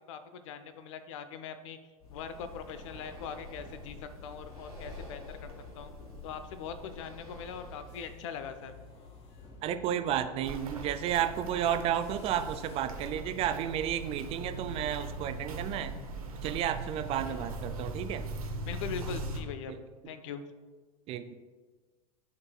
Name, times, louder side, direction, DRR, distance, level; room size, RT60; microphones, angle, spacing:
voice 1, 0.1-1.8 2.1-5.9 6.2-8.7 17.2-17.5 18.6-19.7 20.1-20.4, left 6 dB, 55° left, 10 dB, 0.6 m, -41 dB
Breathing, 2.0-8.1, left 2 dB, 80° left, 1.4 m, -48 dB
sound 1, 2.0-15.5, left 4 dB, 30° left, 1.0 m, -53 dB
voice 2, 9.6-15.9 16.4-18.2 19.7-19.8 20.0-20.1 21.1-21.3, right 10 dB, 30° right, 9 dB, 0.4 m, -32 dB
Walk footsteps, 10.4-19.4, right 2 dB, 75° right, 0.9 m, -40 dB
11.5 x 4.0 x 2.2 m, 1.4 s
figure-of-eight pair, 85°, 19 cm